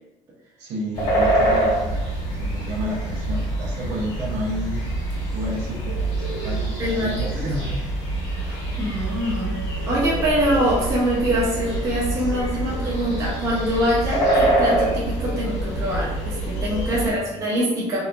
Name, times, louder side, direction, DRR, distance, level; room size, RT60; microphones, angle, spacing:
voice 1, 0.6-4.8 5.3-7.7 16.8-17.5, equal, 55° right, -2 dB, 0.7 m, -31 dB
sound 1, 0.9-17.1, right 1 dB, 55° left, 1.0 m, -25 dB
voice 2, 6.8-7.5 8.4-9.6 9.9-18.1, equal, 20° right, -5 dB, 0.5 m, -24 dB
Wind instrument woodwind instrument, 9.0-15.5, right 2 dB, 15° left, 0.8 m, -44 dB
2.8 x 2.4 x 2.2 m, 0.94 s
cardioid pair, 180°, 13 cm